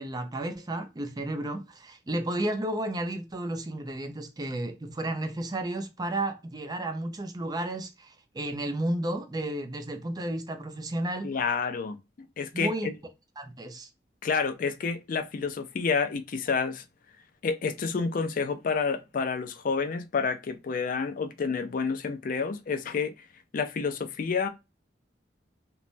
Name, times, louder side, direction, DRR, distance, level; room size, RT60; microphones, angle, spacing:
voice 1, 0.0-11.3 12.5-12.9 13.4-13.9, right 1 dB, 20° right, 0.4 m, -32 dB
voice 2, 11.2-12.0 12.4-12.9 14.2-16.8 17.4-23.1 23.5-24.5, left 5 dB, 50° left, 0.4 m, -29 dB
3.0 x 2.1 x 2.5 m
head